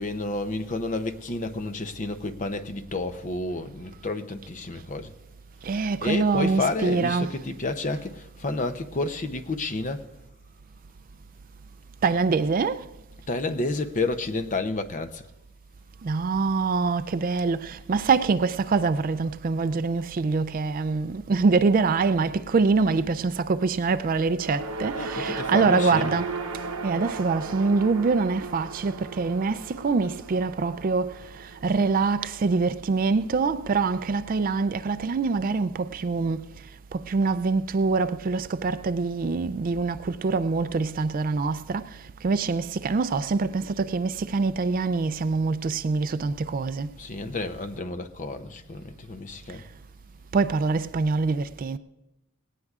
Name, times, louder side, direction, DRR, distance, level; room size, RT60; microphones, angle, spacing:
voice 1, 0.0-5.1 6.0-10.1 13.3-15.3 24.9-26.1 47.0-49.6, left 2 dB, 35° left, 0.6 m, -30 dB
voice 2, 5.6-7.4 12.0-12.9 16.0-26.3 26.8-36.5 36.9-46.9 50.3-51.8, right 4 dB, 40° right, 0.3 m, -25 dB
sound 1, 24.3-32.7, right 3 dB, 90° right, 0.9 m, -36 dB
19.0 x 17.5 x 2.4 m
head